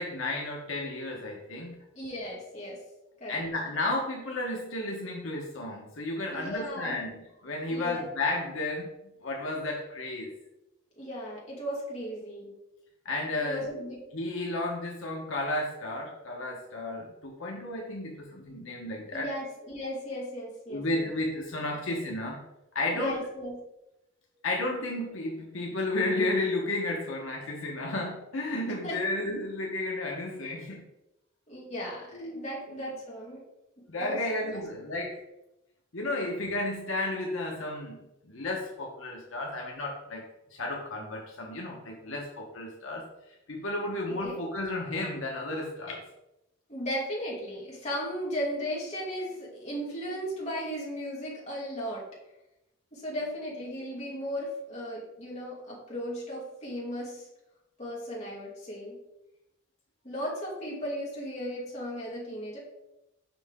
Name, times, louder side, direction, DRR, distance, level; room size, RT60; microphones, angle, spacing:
voice 1, 0.0-1.8 3.3-8.9 9.2-10.3 13.0-19.3 20.7-22.4 22.7-23.3 24.4-30.9 32.1-33.0 33.9-35.2 35.9-40.2 40.5-43.0 43.5-46.0, left 2 dB, 75° left, -1 dB, 1.1 m, -33 dB
voice 2, 1.9-2.8 3.2-3.4 6.3-7.1 7.7-8.1 11.0-12.5 13.4-14.0 19.1-21.1 22.9-23.6 28.8-29.0 31.5-33.4 34.0-34.2 34.5-34.6 44.2-44.4 46.7-52.0 52.9-57.3 57.8-59.0 60.0-62.6, equal, 35° left, -5 dB, 2.1 m, -36 dB
5.9 x 5.5 x 3.6 m, 0.90 s
head